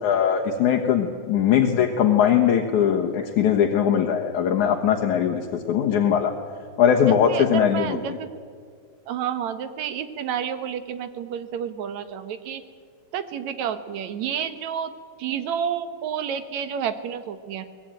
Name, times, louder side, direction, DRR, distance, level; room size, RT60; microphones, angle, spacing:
voice 1, 0.0-6.3 6.8-8.0, left 8 dB, 80° left, 2 dB, 2.8 m, -20 dB
voice 2, 7.1-8.3 9.1-12.6 13.1-14.9 15.2-17.6, right 8 dB, 70° right, 10 dB, 2.5 m, -30 dB
23.5 x 19.5 x 9.1 m, 2.1 s
omnidirectional pair, 3.4 m